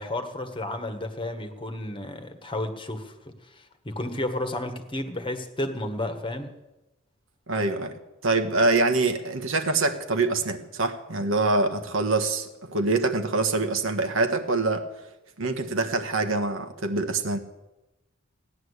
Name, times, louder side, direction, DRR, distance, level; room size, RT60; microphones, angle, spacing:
voice 1, 0.0-3.1 3.5-6.5, left 1 dB, 25° left, 7 dB, 1.4 m, -32 dB
voice 2, 7.5-7.9 8.2-14.8 15.4-17.4, right 3 dB, 65° right, 5 dB, 1.5 m, -25 dB
16.5 x 10.5 x 8.1 m, 0.99 s
head